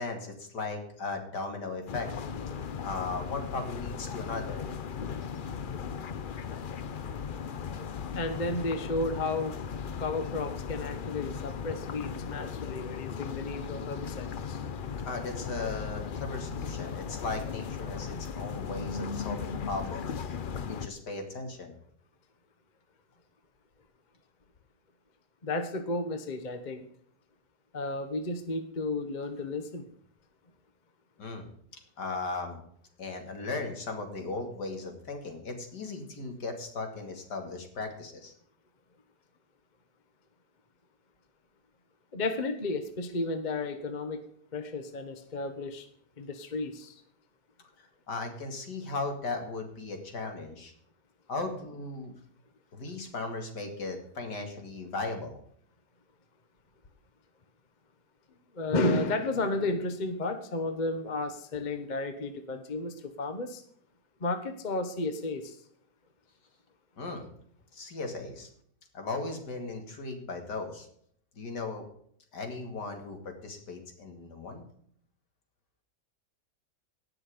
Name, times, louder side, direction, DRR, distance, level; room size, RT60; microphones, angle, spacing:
voice 1, 0.0-2.1 2.8-4.7 15.1-20.4 20.7-21.7 31.2-31.5 32.0-32.6 33.0-38.3 47.8-50.7 51.3-52.1 52.7-55.4 67.0-67.3 67.7-68.5 68.9-70.9 71.4-71.9 72.3-74.6, left 3 dB, 80° left, 4 dB, 3.0 m, -37 dB
sound 1, 1.9-20.9, left 6 dB, 60° left, 0.5 m, -37 dB
voice 2, 8.1-9.6 10.0-14.6 25.4-26.8 27.7-29.8 42.1-44.2 44.5-45.9 46.2-47.0 58.5-63.6 64.2-65.6, left 2 dB, 30° left, 8 dB, 1.1 m, -32 dB
18.0 x 6.4 x 5.0 m, 0.64 s
omnidirectional pair, 1.8 m